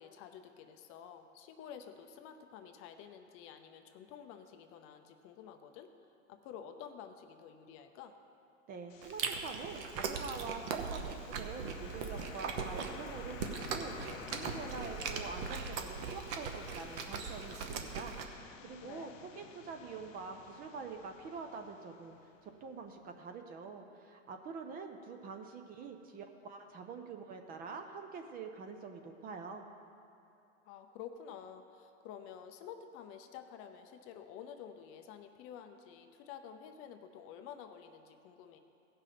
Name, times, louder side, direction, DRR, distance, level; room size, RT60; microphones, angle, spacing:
voice 1, 0.0-5.9 6.3-8.1 18.8-19.2 30.6-38.6, left 8 dB, 35° left, 7 dB, 0.6 m, -50 dB
voice 2, 8.7-18.1 18.6-19.1 19.4-22.2 22.4-29.6, right 5 dB, 25° right, 5 dB, 0.5 m, -45 dB
sound 1, 8.9-22.8, left 7 dB, 80° left, 1.0 m, -52 dB
Chewing mastication, 9.0-18.3, right 5 dB, 40° right, 0.9 m, -40 dB
16.5 x 6.0 x 5.0 m, 2.6 s
hypercardioid pair, 130°, 39 cm